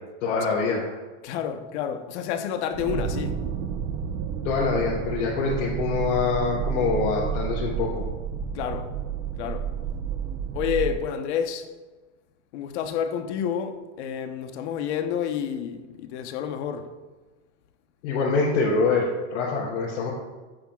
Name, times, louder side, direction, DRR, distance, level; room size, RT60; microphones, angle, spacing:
voice 1, 0.2-0.9 4.4-8.1 18.0-20.1, left 4 dB, 90° left, 3.6 m, -25 dB
voice 2, 1.2-3.4 8.5-8.9 9.4-9.7 10.5-11.7 12.5-16.9, left 8 dB, 70° left, 1.2 m, -29 dB
sound 1, 2.7-11.0, right 7 dB, 55° right, 0.9 m, -30 dB
16.5 x 10.0 x 2.5 m
supercardioid pair, 165°, 35 cm